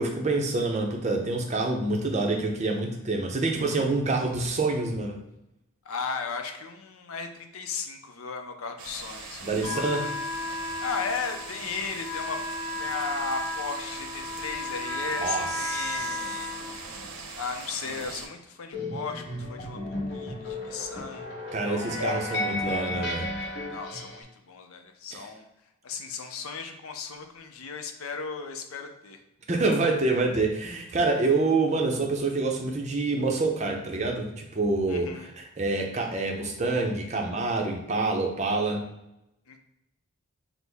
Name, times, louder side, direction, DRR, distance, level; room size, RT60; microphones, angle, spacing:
voice 1, 0.0-5.2 9.4-10.1 15.2-16.2 21.5-23.3 25.1-25.2 29.5-38.8, right 3 dB, 30° right, 2 dB, 0.5 m, -27 dB
voice 2, 5.8-10.1 10.8-12.4 12.8-16.5 17.3-21.3 21.6-22.1 23.7-25.5 25.8-29.2 34.9-35.3 39.5-39.6, left 5 dB, 70° left, 6 dB, 0.5 m, -36 dB
sound 1, 8.8-18.3, right 4 dB, 80° right, 0.7 m, -41 dB
Wind instrument woodwind instrument, 9.6-17.3, left 2 dB, 5° left, 1.1 m, -34 dB
sound 2, 18.7-24.2, left 2 dB, 50° left, 1.0 m, -33 dB
6.0 x 2.0 x 3.4 m, 0.86 s
head